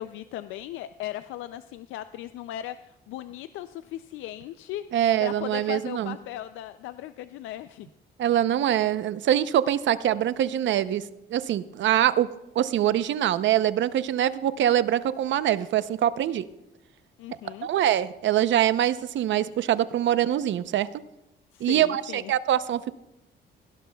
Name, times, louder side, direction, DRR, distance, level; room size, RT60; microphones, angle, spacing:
voice 1, 0.0-4.8 5.2-7.9 8.6-8.7 17.2-17.7 21.5-22.3, left 13 dB, 90° left, 12 dB, 0.4 m, -37 dB
voice 2, 4.9-6.1 8.2-11.0 11.3-12.3 12.5-16.4 17.6-20.9 21.6-22.9, right 11 dB, 70° right, 13 dB, 0.7 m, -24 dB
17.0 x 17.0 x 2.3 m, 0.91 s
cardioid pair, 90°, 20 cm